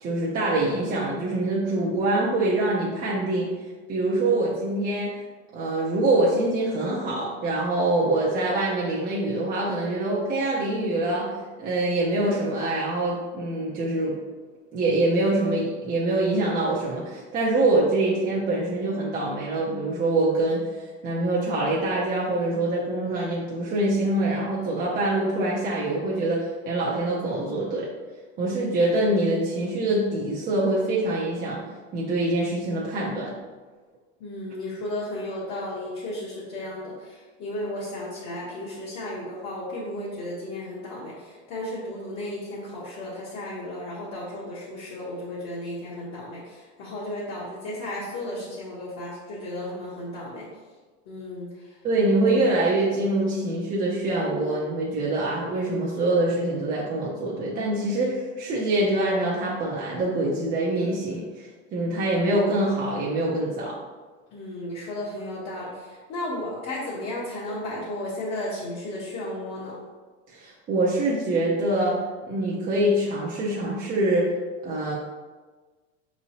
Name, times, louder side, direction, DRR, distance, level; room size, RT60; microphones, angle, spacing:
voice 1, 0.0-3.5 3.9-5.1 5.5-11.3 11.6-14.2 14.7-27.9 28.4-31.6 31.9-33.4 51.8-63.7 70.3-72.0 72.2-74.3 74.6-74.9, right 2 dB, 25° right, -5 dB, 0.5 m, -24 dB
voice 2, 34.2-50.4 51.1-51.8 64.3-69.8, left 1 dB, 45° left, -7 dB, 1.0 m, -34 dB
4.7 x 3.0 x 2.7 m, 1.4 s
supercardioid pair, 150°, 35 cm